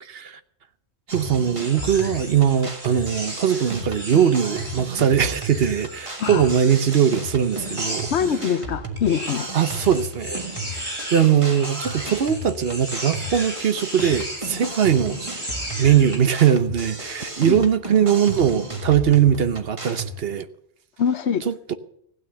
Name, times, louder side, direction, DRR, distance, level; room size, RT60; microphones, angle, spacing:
voice 1, 0.0-0.4 1.1-8.1 9.5-10.4 10.8-15.3 15.8-20.5 21.5-21.7, right 8 dB, 65° right, 1.0 m, -20 dB
sound 1, 1.1-20.1, right 1 dB, 30° right, 1.7 m, -34 dB
sound 2, 1.5-8.4 9.0-16.2, equal, 45° right, 5.3 m, -35 dB
voice 2, 8.1-9.5 17.4-17.6 21.0-21.4, left 7 dB, 75° left, 1.1 m, -23 dB
16.0 x 9.1 x 6.9 m
omnidirectional pair, 1.1 m